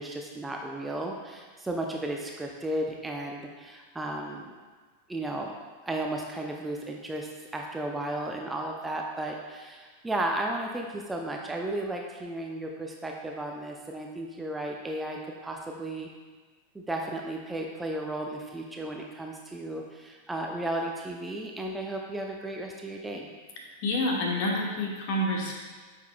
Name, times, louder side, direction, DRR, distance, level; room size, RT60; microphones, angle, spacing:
voice 1, 0.0-4.5 5.1-5.5 5.8-16.1 16.7-23.3, right 1 dB, 10° right, 1 dB, 0.5 m, -34 dB
voice 2, 23.8-25.5, left 1 dB, 45° left, 0 dB, 1.3 m, -28 dB
9.1 x 5.4 x 2.3 m, 1.4 s
figure-of-eight pair, 90°, 0 cm